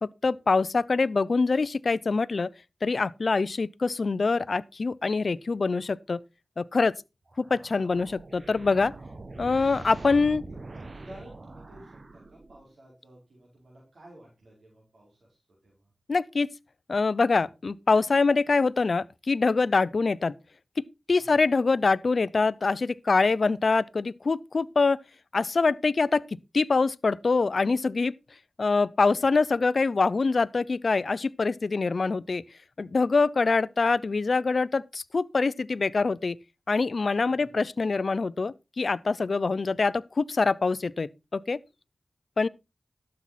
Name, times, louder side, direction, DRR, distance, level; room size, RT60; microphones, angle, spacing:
voice 1, 0.0-2.5 2.8-6.2 6.6-6.9 7.4-8.9 9.4-10.4 16.1-16.5 16.9-20.4 20.8-25.0 25.3-26.2 26.5-28.1 28.6-32.4 32.8-36.4 36.7-41.6 42.4-42.5, left 4 dB, 65° left, 0.5 m, -24 dB
sound 1, 7.3-12.7, right 2 dB, 50° right, 1.5 m, -43 dB
voice 2, 10.7-15.9 17.4-17.5 21.2-21.4 37.3-37.5, right 1 dB, 75° right, 4.6 m, -52 dB
12.0 x 7.6 x 4.1 m
cardioid pair, 50°, 0 cm